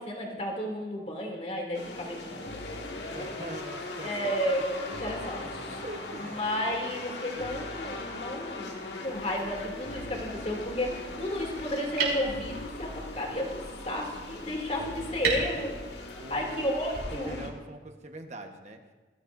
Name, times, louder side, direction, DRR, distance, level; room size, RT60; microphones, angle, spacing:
voice 1, 0.0-2.6 2.9-3.4 4.0-5.8 6.4-8.7 9.0-15.8 16.3-17.4, equal, 35° left, -1 dB, 2.7 m, -33 dB
sound 1, 1.7-17.5, left 2 dB, 70° left, 2.0 m, -40 dB
voice 2, 3.1-4.6 5.2-6.4 14.8-15.2 16.2-16.8 17.1-18.8, right 1 dB, 40° right, 4 dB, 1.2 m, -43 dB
sound 2, 9.0-17.0, right 4 dB, 60° right, 4.6 m, -38 dB
20.0 x 15.5 x 2.6 m, 1.3 s
head